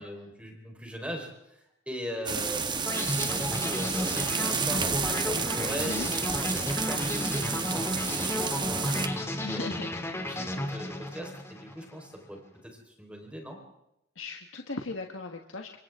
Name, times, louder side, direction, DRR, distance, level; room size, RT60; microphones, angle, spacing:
voice 1, 0.0-9.7 10.3-12.4 12.6-13.6, equal, 5° right, 1 dB, 4.4 m, -40 dB
sound 1, 2.3-9.1, right 5 dB, 25° right, 1.3 m, -31 dB
sound 2, 2.9-11.9, left 1 dB, 15° left, 2.6 m, -33 dB
voice 2, 9.4-9.9 14.1-15.7, left 3 dB, 75° left, 3 dB, 1.5 m, -37 dB
28.5 x 25.5 x 3.7 m, 0.83 s
head